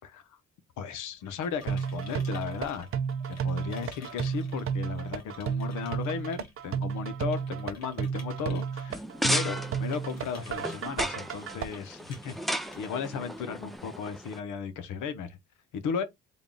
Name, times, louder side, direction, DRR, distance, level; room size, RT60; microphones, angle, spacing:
voice 1, 0.8-2.9 3.3-9.0 9.3-12.4 12.7-15.4 15.7-16.0, left 6 dB, 85° left, 0.8 m, -35 dB
sound 1, 1.1-13.8, left 4 dB, 60° left, 1.6 m, -54 dB
sound 2, 1.7-11.7, right 7 dB, 45° right, 0.6 m, -32 dB
sound 3, 8.9-14.4, equal, ahead, 0.4 m, -35 dB
3.6 x 2.3 x 3.7 m
cardioid pair, 90°, 30 cm